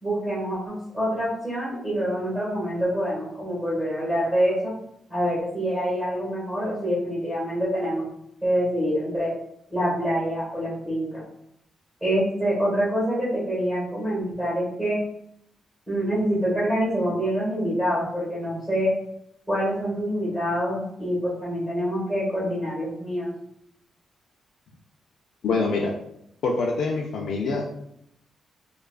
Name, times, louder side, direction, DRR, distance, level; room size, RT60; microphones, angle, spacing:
voice 1, 0.0-4.7 5.1-8.0 8.4-9.3 9.7-11.2 12.0-15.0 15.9-18.9 19.5-23.3, equal, ahead, -7 dB, 1.4 m, -26 dB
voice 2, 25.4-25.9 26.4-27.7, left 3 dB, 70° left, -1 dB, 0.4 m, -25 dB
4.7 x 2.3 x 2.4 m, 0.73 s
wide cardioid pair, 160°, 0 cm